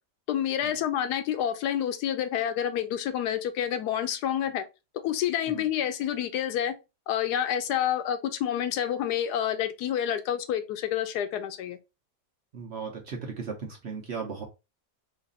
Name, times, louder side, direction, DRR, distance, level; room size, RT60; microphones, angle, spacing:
voice 1, 0.3-4.6 5.0-6.7 7.1-11.8, left 10 dB, 80° left, 1.1 m, -28 dB
voice 2, 12.5-14.4, right 5 dB, 50° right, 0.9 m, -37 dB
3.2 x 2.5 x 3.7 m
omnidirectional pair, 1.7 m